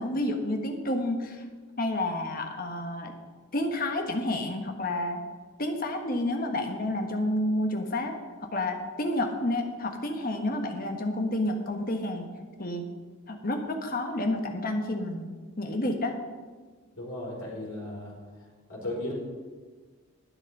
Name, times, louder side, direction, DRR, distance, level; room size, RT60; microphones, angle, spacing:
voice 1, 0.0-1.4 1.8-3.1 3.5-5.2 5.6-8.1 8.5-12.2 12.6-12.9 13.3-15.3 15.6-16.1, left 1 dB, 40° left, 4 dB, 1.3 m, -30 dB
voice 2, 16.9-18.2 18.7-19.1, left 1 dB, 80° left, -3 dB, 3.8 m, -35 dB
11.0 x 9.8 x 5.4 m, 1.5 s
head